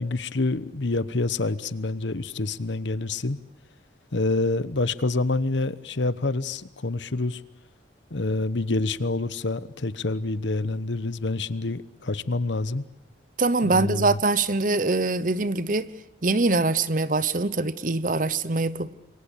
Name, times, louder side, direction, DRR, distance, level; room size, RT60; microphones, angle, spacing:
voice 1, 0.0-3.4 4.1-7.4 8.1-12.8 13.7-14.2, left 2 dB, 80° left, 1.0 m, -27 dB
voice 2, 13.4-15.9 16.2-18.9, right 3 dB, 45° right, 0.9 m, -23 dB
27.5 x 23.0 x 8.4 m
head